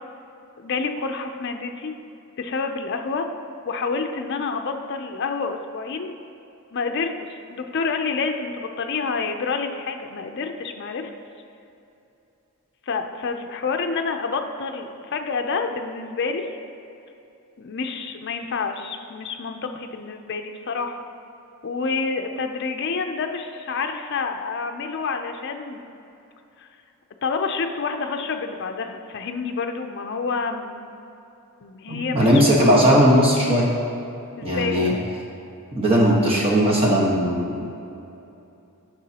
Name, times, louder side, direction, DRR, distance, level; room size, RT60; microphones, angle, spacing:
voice 1, 0.6-1.9 2.4-3.3 3.7-6.1 6.7-11.1 12.9-16.5 17.6-21.0 21.6-25.9 26.6-26.7 27.2-30.9 31.6-32.7 34.4-35.0, left 4 dB, 50° left, 5 dB, 0.5 m, -28 dB
voice 2, 31.9-33.7 34.4-34.9 35.7-37.7, equal, 25° right, -4 dB, 1.2 m, -18 dB
11.5 x 6.1 x 2.9 m, 2.8 s
head